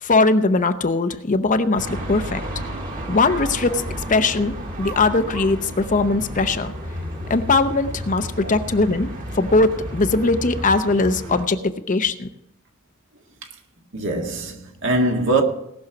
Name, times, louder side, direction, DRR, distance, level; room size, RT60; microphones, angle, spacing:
voice 1, 0.0-2.4 3.1-3.8 4.1-6.7 7.3-12.3, left 3 dB, 40° left, 0.7 m, -20 dB
sound 1, 1.8-11.4, equal, 40° right, 2.1 m, -32 dB
voice 2, 13.9-15.4, right 2 dB, 65° right, 1.8 m, -22 dB
18.0 x 6.4 x 5.9 m
head